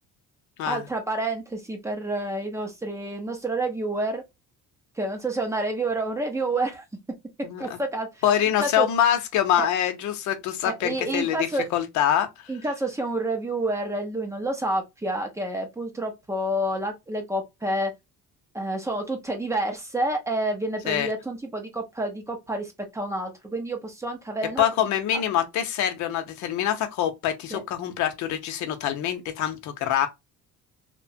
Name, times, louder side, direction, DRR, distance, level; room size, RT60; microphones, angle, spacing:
voice 1, 0.6-4.2 5.0-6.8 7.6-8.2 8.6-8.9 9.6-9.7 10.6-11.7 12.5-17.9 18.5-25.2 27.5-27.6, right 2 dB, 10° right, 0.5 m, -29 dB
voice 2, 7.4-7.8 8.2-12.5 20.9-21.1 24.6-30.1, left 10 dB, 70° left, 0.7 m, -25 dB
2.9 x 2.2 x 2.6 m
cardioid pair, 160°, 30 cm